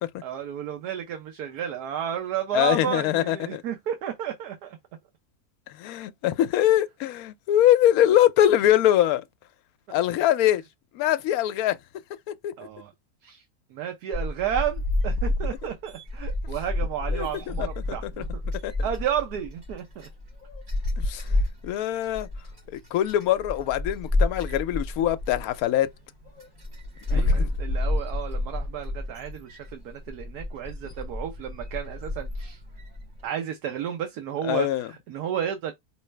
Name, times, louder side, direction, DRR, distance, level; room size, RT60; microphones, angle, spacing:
voice 1, 0.2-4.8 12.6-12.9 13.2-13.4 13.7-18.4 18.8-20.1 27.1-32.6 33.2-35.7, right 9 dB, 80° right, 1.3 m, -32 dB
voice 2, 2.5-3.6 5.8-9.2 9.9-10.6 10.9-11.8 12.4-12.5 17.1-17.7 18.0-18.2 18.6-18.7 21.1-22.3 22.9-25.9 27.1-27.5 34.4-34.9, left 12 dB, 75° left, 1.0 m, -23 dB
sound 1, 14.1-33.2, left 2 dB, 45° right, 3.1 m, -30 dB
4.6 x 3.1 x 3.2 m
omnidirectional pair, 1.7 m